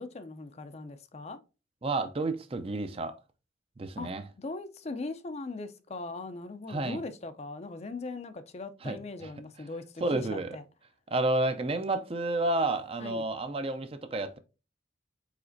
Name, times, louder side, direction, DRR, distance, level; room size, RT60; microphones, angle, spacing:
voice 1, 0.0-1.4 4.0-4.1 4.4-10.6 13.0-13.2, left 3 dB, 35° left, 0.4 m, -40 dB
voice 2, 1.8-3.2 3.8-4.2 6.7-7.0 8.8-9.3 10.0-10.6 11.1-14.4, right 2 dB, 30° right, 0.4 m, -30 dB
4.9 x 4.2 x 2.6 m
head